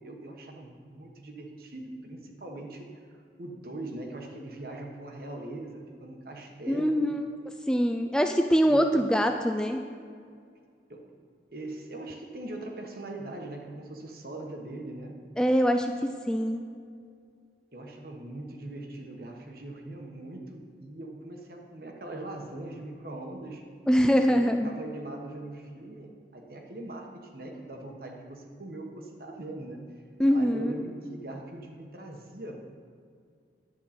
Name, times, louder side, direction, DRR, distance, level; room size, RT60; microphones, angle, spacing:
voice 1, 0.0-3.0 3.4-7.0 8.6-8.8 10.9-11.1 11.5-15.1 17.7-23.6 24.3-29.8 30.3-32.7, right 2 dB, 55° right, 1 dB, 1.3 m, -41 dB
voice 2, 6.7-7.3 7.7-9.8 15.4-15.9 16.3-16.6 23.9-24.7 30.2-30.8, equal, 5° left, 5 dB, 0.3 m, -23 dB
10.5 x 8.8 x 4.3 m, 2.2 s
head